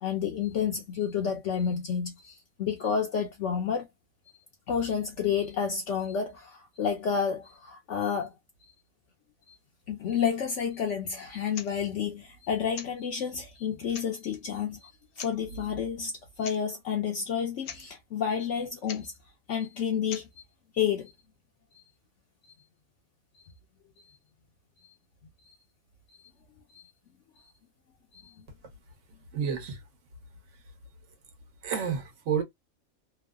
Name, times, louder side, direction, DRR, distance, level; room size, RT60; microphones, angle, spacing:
voice 1, 0.0-3.9 4.7-8.3 9.5-9.6 9.9-14.9 15.2-16.1 16.4-19.1 19.5-20.4 20.7-21.1 26.7-26.8 28.1-28.2, left 7 dB, 65° left, 0.8 m, -30 dB
sound 1, 11.5-11.7 12.7-13.0 13.6-13.7 13.9-14.4 15.1-15.4 16.4-16.6 16.9-17.0 17.3-17.4 17.6-17.9 18.9-19.1 20.1-20.3, left 8 dB, 85° left, 1.1 m, -41 dB
voice 2, 29.3-29.8 31.6-32.4, right 7 dB, 60° right, 1.1 m, -30 dB
3.0 x 2.0 x 2.3 m
omnidirectional pair, 1.5 m